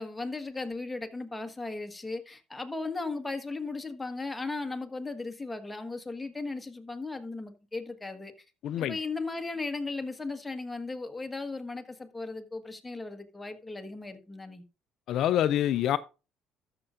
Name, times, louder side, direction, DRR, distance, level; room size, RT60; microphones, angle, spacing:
voice 1, 0.0-8.3 8.8-14.6, left 3 dB, 15° left, 1.4 m, -36 dB
voice 2, 8.6-8.9 15.1-16.0, left 11 dB, 65° left, 0.4 m, -26 dB
13.5 x 6.6 x 2.5 m
supercardioid pair, 75°, 0 cm